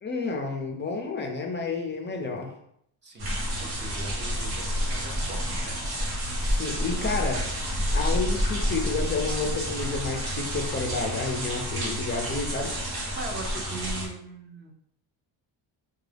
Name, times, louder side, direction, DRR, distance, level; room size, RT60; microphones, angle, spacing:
voice 1, 0.0-2.5 6.4-7.4 7.8-12.8, left 4 dB, 25° left, 2 dB, 0.4 m, -30 dB
voice 2, 3.0-5.8 13.2-14.7, right 3 dB, 25° right, 2 dB, 0.5 m, -40 dB
sound 1, 3.2-14.1, equal, 50° right, 1.5 m, -29 dB
4.7 x 2.3 x 3.3 m, 0.72 s
cardioid pair, 180°, 48 cm